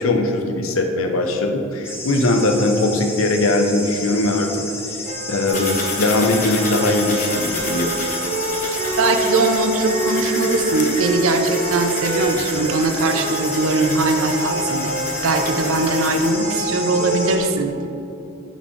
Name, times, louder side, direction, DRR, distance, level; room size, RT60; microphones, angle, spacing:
voice 1, 0.0-4.6 5.3-8.0, left 2 dB, 70° left, 4 dB, 0.7 m, -20 dB
sound 1, 1.8-17.4, left 1 dB, 10° left, 0.7 m, -32 dB
sound 2, 5.1-17.4, right 1 dB, 40° right, 0.8 m, -27 dB
sound 3, 5.5-16.3, left 3 dB, 40° left, 0.9 m, -31 dB
voice 2, 9.0-14.9 15.2-17.8, right 2 dB, 70° right, 6 dB, 0.5 m, -20 dB
9.2 x 4.2 x 3.2 m, 2.8 s
head